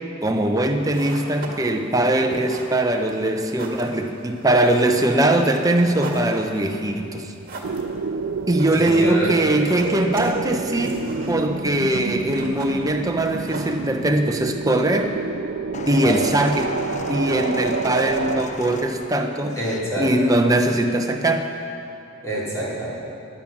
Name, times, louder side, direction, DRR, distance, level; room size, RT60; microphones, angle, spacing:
voice 1, 0.2-7.3 8.5-15.2 15.9-16.7 17.1-19.6 20.0-21.5, right 1 dB, 15° right, 4 dB, 0.9 m, -21 dB
sound 1, 0.7-14.3, right 2 dB, 45° right, 1.9 m, -41 dB
sound 2, 7.6-18.4, right 4 dB, 65° right, 0.5 m, -29 dB
voice 2, 8.7-9.3 16.0-16.2 19.6-20.1 22.2-22.9, equal, 15° left, -7 dB, 3.8 m, -26 dB
sound 3, 15.7-19.9 20.7-20.9, left 4 dB, 35° left, 0.5 m, -37 dB
16.0 x 11.0 x 6.1 m, 2.6 s
head